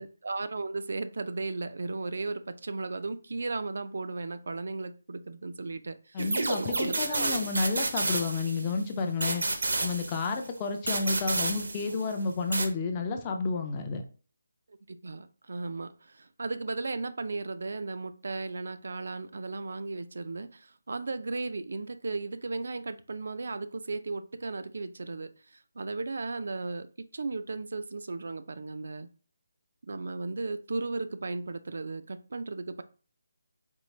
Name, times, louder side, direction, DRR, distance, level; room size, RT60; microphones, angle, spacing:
voice 1, 0.0-7.4 14.9-29.1 29.9-32.8, right 3 dB, 60° right, 0.4 m, -36 dB
voice 2, 6.1-9.4 9.8-14.0, left 4 dB, 15° left, 0.4 m, -31 dB
sound 1, 6.2-8.8 9.2-10.5 10.9-12.1 12.5-12.7, right 2 dB, 75° right, 0.7 m, -30 dB
4.5 x 2.4 x 3.0 m
hypercardioid pair, 175°, 0 cm